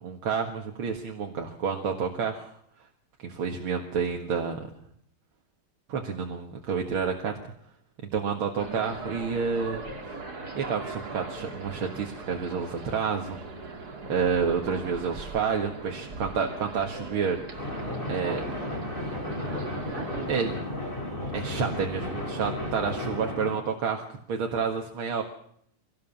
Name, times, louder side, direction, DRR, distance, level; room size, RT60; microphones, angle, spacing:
voice 1, 0.0-2.5 3.2-4.7 5.9-7.4 8.1-10.2 10.5-13.5 14.1-17.4 18.1-18.4 20.3-20.5 21.3-25.2, right 6 dB, 85° right, 2 dB, 2.5 m, -29 dB
sound 1, 8.6-20.3, right 3 dB, 50° right, 3.2 m, -39 dB
sound 2, 17.6-23.5, left 1 dB, 25° left, 5.2 m, -33 dB
24.0 x 18.0 x 7.2 m, 0.69 s
omnidirectional pair, 2.2 m